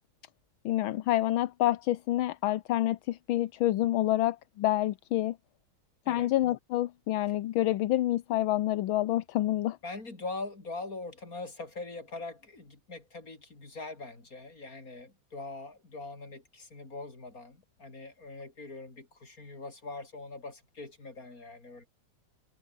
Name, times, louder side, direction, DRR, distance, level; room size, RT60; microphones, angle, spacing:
voice 1, 0.6-5.4 6.1-9.8, left 14 dB, 80° left, 1.6 m, -28 dB
voice 2, 9.8-21.9, left 3 dB, 45° left, 5.1 m, -42 dB
omnidirectional pair, 2.2 m